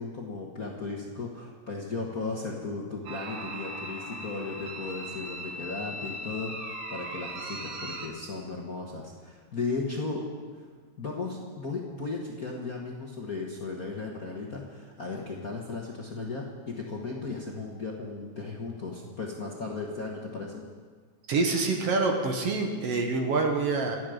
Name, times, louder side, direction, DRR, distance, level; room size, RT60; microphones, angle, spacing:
voice 1, 0.0-10.2 10.5-10.7 11.0-20.6, left 3 dB, 45° left, -2 dB, 1.3 m, -36 dB
sound 1, 3.1-8.1, right 1 dB, 80° right, 2.7 m, -39 dB
voice 2, 21.3-24.0, right 3 dB, 60° right, 3 dB, 2.2 m, -26 dB
27.0 x 9.3 x 5.0 m, 1.5 s
omnidirectional pair, 3.4 m